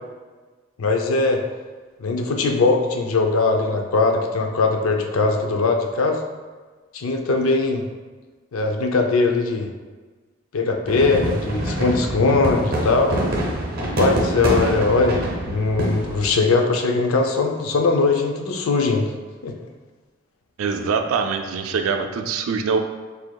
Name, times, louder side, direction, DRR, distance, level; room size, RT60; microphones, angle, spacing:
voice 1, 0.8-1.4 2.0-6.2 6.9-7.8 8.5-9.7 10.5-13.2 13.8-19.1 19.4-19.5, left 3 dB, 90° left, 3 dB, 0.5 m, -20 dB
sound 1, 10.8-16.3, right 1 dB, 45° right, 0.7 m, -25 dB
voice 2, 20.6-22.8, right 5 dB, 85° right, 6 dB, 0.4 m, -23 dB
4.5 x 3.3 x 2.2 m, 1.4 s
head